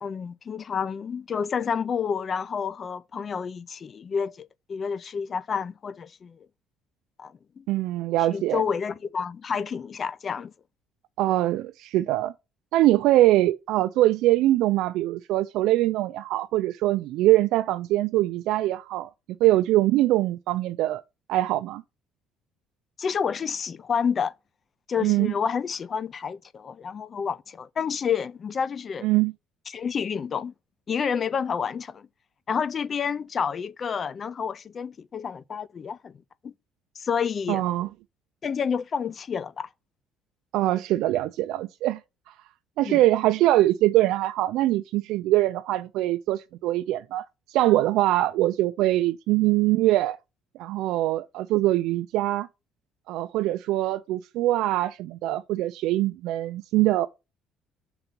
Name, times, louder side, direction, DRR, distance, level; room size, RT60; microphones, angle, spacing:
voice 1, 0.0-6.4 7.2-7.6 8.3-10.5 23.0-24.3 24.9-29.1 29.7-30.5 30.9-32.1 32.5-36.1 36.4-36.5 37.0-37.6 38.4-39.7 42.9-43.0, left 6 dB, 30° left, 0.3 m, -29 dB
voice 2, 7.7-8.6 11.2-12.3 12.7-19.1 19.4-21.0 21.3-21.8 25.0-25.3 29.0-29.3 37.5-37.9 40.5-42.0 42.3-42.4 42.8-50.2 50.6-52.5 53.1-57.1, right 15 dB, 75° right, 0.4 m, -23 dB
5.8 x 4.0 x 5.1 m
cardioid pair, 175°, 0 cm